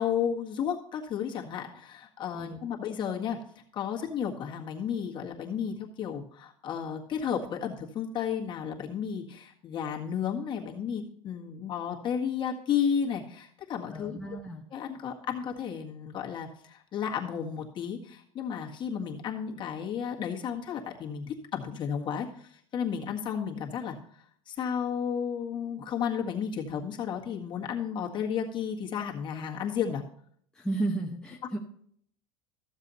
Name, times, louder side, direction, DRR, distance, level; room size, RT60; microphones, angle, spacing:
voice 1, 0.0-3.4 3.7-14.2 14.7-23.9 24.5-30.0, left 8 dB, 35° left, -1 dB, 1.7 m, -33 dB
voice 2, 13.9-14.6 30.5-31.6, right 2 dB, 5° left, -2 dB, 1.0 m, -33 dB
14.0 x 7.3 x 4.1 m, 0.64 s
cardioid pair, 140°, 13 cm